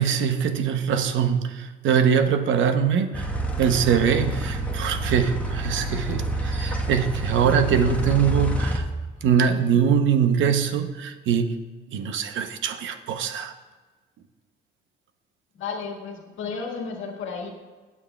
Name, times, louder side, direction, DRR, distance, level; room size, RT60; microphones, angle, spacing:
voice 1, 0.0-3.3 3.6-8.8 9.2-11.6 11.9-13.5, right 7 dB, 75° right, 8 dB, 0.8 m, -22 dB
sound 1, 3.1-8.8, right 1 dB, 5° left, 1.1 m, -28 dB
voice 2, 15.5-17.5, left 5 dB, 80° left, 1 dB, 1.6 m, -33 dB
17.5 x 7.2 x 2.3 m, 1.3 s
cardioid pair, 90°, 20 cm